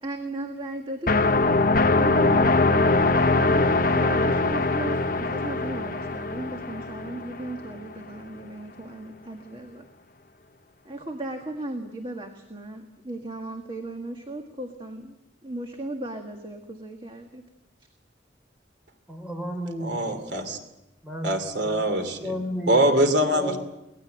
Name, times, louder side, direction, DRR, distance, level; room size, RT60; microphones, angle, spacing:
voice 1, 0.0-1.6 1.9-3.7 3.9-9.9 10.9-15.2 15.4-17.4, right 1 dB, 30° right, 3 dB, 1.7 m, -36 dB
sound 1, 1.1-7.8, left 3 dB, 50° left, 0.8 m, -22 dB
voice 2, 19.1-20.3 21.0-21.3 21.6-22.8 23.3-23.6, left 1 dB, 10° right, 5 dB, 4.4 m, -33 dB
voice 3, 19.8-20.6 21.2-22.4 22.7-23.6, right 1 dB, 75° right, 7 dB, 2.8 m, -23 dB
23.5 x 19.0 x 7.8 m, 0.96 s
head